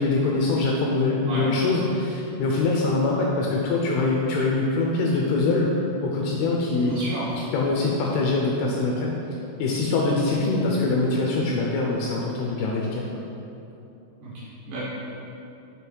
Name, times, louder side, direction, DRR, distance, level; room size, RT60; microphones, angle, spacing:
voice 1, 0.0-5.7 6.0-6.9 7.5-9.1 9.6-13.0, left 3 dB, 85° left, -2 dB, 2.3 m, -23 dB
voice 2, 6.8-7.5 10.3-10.5 14.2-14.8, right 1 dB, 65° right, -8 dB, 2.5 m, -33 dB
7.2 x 3.4 x 4.5 m, 2.8 s
omnidirectional pair, 4.9 m